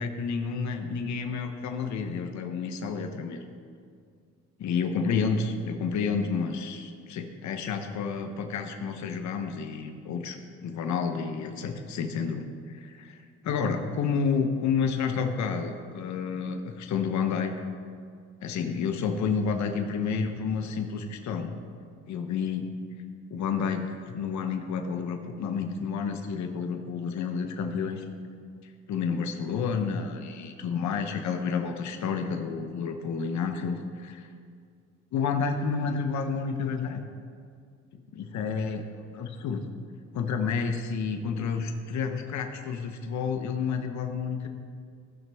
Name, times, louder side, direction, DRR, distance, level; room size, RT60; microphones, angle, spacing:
voice 1, 0.0-3.4 4.6-13.2 13.4-17.5 18.4-21.6 22.1-22.7 23.3-28.0 28.9-34.3 35.1-37.0 38.1-39.7 40.1-44.5, left 5 dB, 70° left, 5 dB, 0.9 m, -30 dB
16.0 x 6.1 x 3.5 m, 2.2 s
cardioid pair, 90°, 30 cm